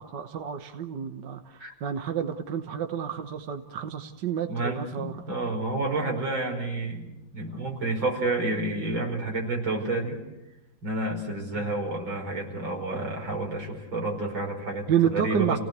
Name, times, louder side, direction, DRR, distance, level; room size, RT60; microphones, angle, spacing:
voice 1, 0.0-5.2 14.9-15.6, right 9 dB, 65° right, 7 dB, 1.7 m, -29 dB
voice 2, 4.5-7.1 7.3-10.2 10.8-15.6, right 2 dB, 90° right, 1 dB, 5.9 m, -30 dB
29.5 x 18.0 x 8.1 m, 0.96 s
omnidirectional pair, 2.1 m